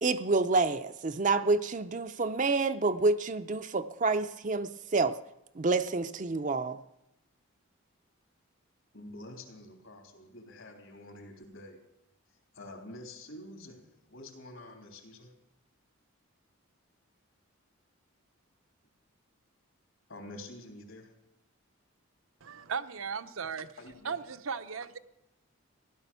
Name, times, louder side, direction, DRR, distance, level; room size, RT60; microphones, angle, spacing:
voice 1, 0.0-5.2 5.6-6.8, right 3 dB, 35° right, 9 dB, 0.5 m, -28 dB
voice 2, 8.9-11.8 12.5-15.3 20.1-21.1 23.8-24.2, left 1 dB, 70° left, 3 dB, 3.2 m, -47 dB
voice 3, 22.4-23.7 24.0-25.0, right 6 dB, 75° right, 11 dB, 0.8 m, -36 dB
15.5 x 11.5 x 6.9 m, 0.88 s
head